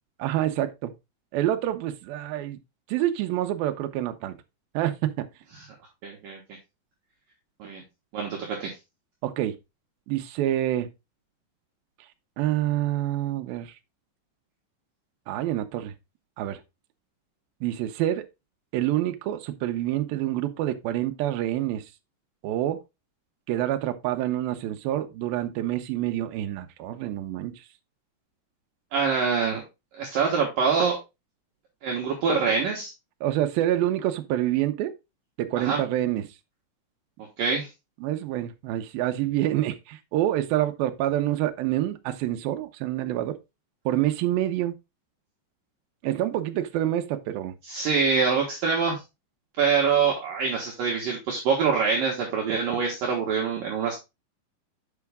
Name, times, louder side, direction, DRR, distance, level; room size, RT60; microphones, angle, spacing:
voice 1, 0.2-0.9 1.3-2.6 2.9-4.4 4.7-5.3 9.2-9.6 10.1-10.9 12.4-13.7 15.3-15.9 16.4-16.6 17.6-18.2 18.7-21.8 22.4-22.8 23.5-27.6 33.2-34.9 35.4-36.3 38.0-43.4 43.9-44.7 46.0-47.5, right 13 dB, 80° right, 2.1 m, -27 dB
voice 2, 6.0-6.4 7.6-7.8 8.1-8.7 28.9-29.6 29.9-31.0 31.8-32.9 35.6-35.8 37.4-37.7 47.6-49.0 49.6-54.0, right 5 dB, 60° right, 2.7 m, -25 dB
8.2 x 5.6 x 3.5 m
omnidirectional pair, 5.3 m